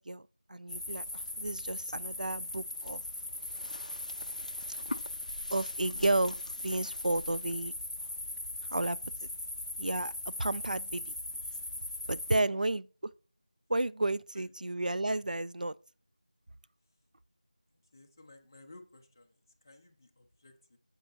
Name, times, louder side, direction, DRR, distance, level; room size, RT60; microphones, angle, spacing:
voice 1, 0.0-3.0 5.5-6.4 6.6-7.7 8.7-9.1 9.8-10.1 10.4-11.1 12.1-12.9 13.7-15.8, right 2 dB, 75° right, 0.4 m, -32 dB
sound 1, 0.7-12.4, left 1 dB, 65° left, 0.5 m, -39 dB
voice 2, 14.1-14.5 17.9-20.8, left 2 dB, 25° left, 0.9 m, -57 dB
9.1 x 7.5 x 2.7 m
figure-of-eight pair, 175°, 4 cm